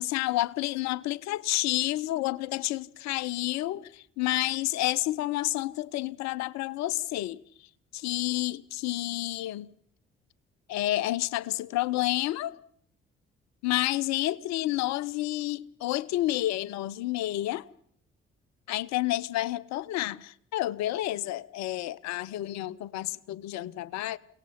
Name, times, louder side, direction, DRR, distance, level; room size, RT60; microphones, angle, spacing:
voice 1, 0.0-7.4 7.9-9.7 10.7-12.6 13.6-17.7 18.7-24.2, left 16 dB, 65° left, 0.8 m, -30 dB
29.0 x 18.0 x 5.9 m
hypercardioid pair, 45°, 30 cm